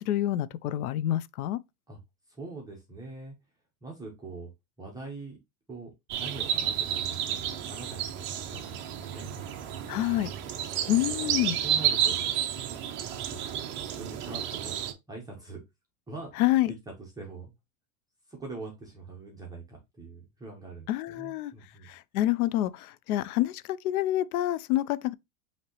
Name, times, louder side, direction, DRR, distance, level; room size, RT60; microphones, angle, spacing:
voice 1, 0.0-1.6 9.9-10.3 10.9-11.6 16.4-16.7 20.9-21.5 21.9-25.1, left 14 dB, 85° left, 0.5 m, -27 dB
voice 2, 2.3-3.3 3.8-4.5 4.8-5.4 5.7-5.9 6.2-10.2 11.0-12.4 13.3-13.4 14.0-14.7 15.1-15.6 16.1-16.3 17.0-17.5 18.3-21.9, right 3 dB, 10° right, 0.9 m, -43 dB
sound 1, 6.1-14.9, right 10 dB, 30° right, 0.5 m, -31 dB
5.7 x 2.9 x 3.0 m
supercardioid pair, 145°, 43 cm